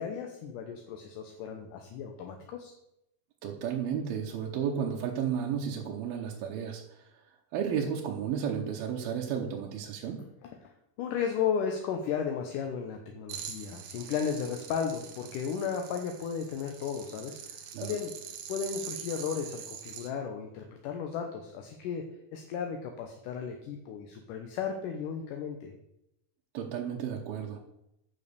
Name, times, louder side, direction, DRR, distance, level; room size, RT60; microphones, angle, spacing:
voice 1, 0.0-2.7 11.0-18.1 18.5-22.0 22.3-25.7, left 7 dB, 70° left, 4 dB, 2.3 m, -34 dB
voice 2, 3.4-7.1 7.5-10.2 17.7-18.0 26.5-27.6, right 7 dB, 80° right, 0 dB, 2.8 m, -33 dB
sound 1, 13.3-20.1, right 8 dB, 65° right, 2.2 m, -44 dB
8.7 x 7.0 x 6.8 m, 0.83 s
omnidirectional pair, 4.3 m